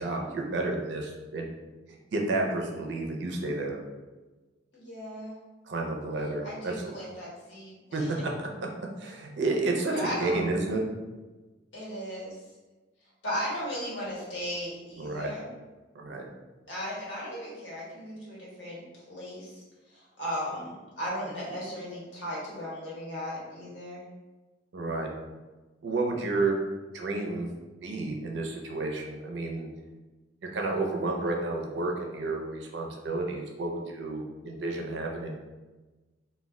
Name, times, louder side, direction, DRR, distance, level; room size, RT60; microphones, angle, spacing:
voice 1, 0.0-1.5 2.1-3.8 5.7-6.9 7.9-8.3 9.0-10.8 15.0-15.3 15.9-16.3 24.7-25.1 25.8-26.6 26.9-27.5 27.8-29.7 30.5-35.4, right 2 dB, 70° right, 1 dB, 0.5 m, -31 dB
voice 2, 4.7-5.3 6.4-8.2 9.9-10.4 11.7-12.4 13.2-15.4 16.7-18.8 19.1-19.6 19.9-20.7 21.0-24.0, equal, 90° left, -7 dB, 1.1 m, -36 dB
2.2 x 2.1 x 3.5 m, 1.2 s
head